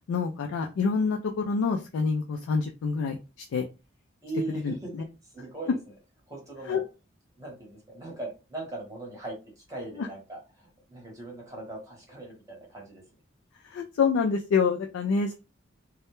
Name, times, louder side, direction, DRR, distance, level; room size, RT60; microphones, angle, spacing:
voice 1, 0.1-3.6 4.6-4.7 6.7-6.8 13.6-15.3, left 5 dB, 85° left, 2 dB, 0.3 m, -27 dB
voice 2, 4.2-5.9 6.3-6.8 7.4-13.0, right 2 dB, 15° right, -2 dB, 0.9 m, -39 dB
2.2 x 2.0 x 2.9 m, 0.29 s
head